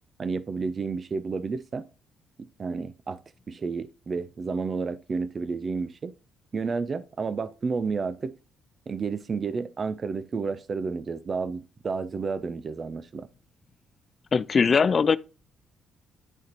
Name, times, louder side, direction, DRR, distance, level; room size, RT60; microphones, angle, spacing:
voice 1, 0.2-1.9 2.6-3.2 3.5-6.1 6.5-8.3 8.9-13.3, right 4 dB, 40° right, 0.5 m, -31 dB
voice 2, 14.3-15.2, left 5 dB, 40° left, 0.4 m, -20 dB
11.0 x 3.9 x 2.9 m
cardioid pair, 90°, 0 cm